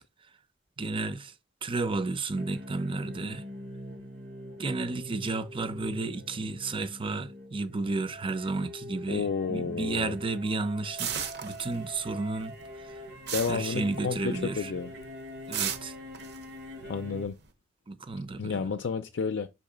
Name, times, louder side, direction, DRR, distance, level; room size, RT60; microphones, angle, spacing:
voice 1, 0.8-1.3 1.6-3.5 4.6-12.5 12.8-13.0 13.5-14.7 15.5-15.9 17.9-18.7, right 3 dB, 30° right, 0.6 m, -32 dB
sound 1, 2.4-17.3, equal, 85° right, 3.7 m, -44 dB
voice 2, 9.1-10.1 13.3-14.9 16.9-17.4 18.4-19.5, left 5 dB, 75° left, 0.4 m, -31 dB
sound 2, 11.0-12.1 12.4-14.4 14.8-15.0 15.5-17.4, right 8 dB, 60° right, 1.0 m, -35 dB
6.2 x 3.1 x 5.0 m
head